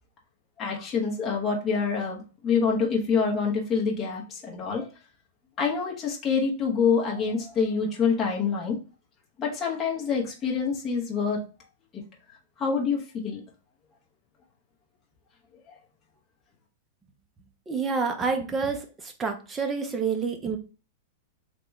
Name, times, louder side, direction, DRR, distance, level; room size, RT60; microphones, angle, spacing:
voice 1, 0.6-4.9 5.6-8.8 9.4-11.4 11.9-12.0 12.6-13.4, left 5 dB, 20° left, -2 dB, 0.9 m, -26 dB
voice 2, 17.7-20.6, right 5 dB, 15° right, 5 dB, 0.5 m, -28 dB
3.5 x 2.9 x 3.0 m, 0.34 s
supercardioid pair, 160°, 0 cm